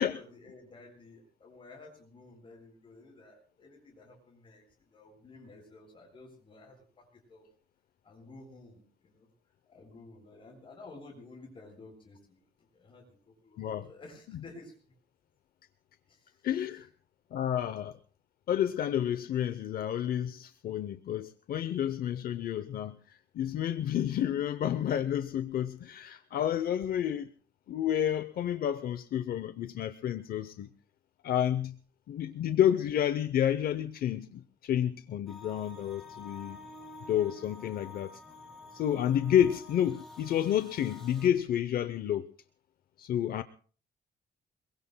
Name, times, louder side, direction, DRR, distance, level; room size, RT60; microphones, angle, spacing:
voice 1, 0.0-7.5 8.0-9.3 9.7-15.0 16.0-16.8 43.4-43.5, left 2 dB, 30° left, 7.6 m, -53 dB
voice 2, 16.4-16.9 17.3-18.0 18.5-23.0 23.3-27.3 27.7-30.7 31.2-31.7 32.1-36.6 37.1-38.2 38.7-42.3 43.0-43.4, left 10 dB, 60° left, 0.7 m, -30 dB
sound 1, 35.3-41.3, left 2 dB, ahead, 4.7 m, -49 dB
27.0 x 22.5 x 2.2 m
cardioid pair, 170°, 17 cm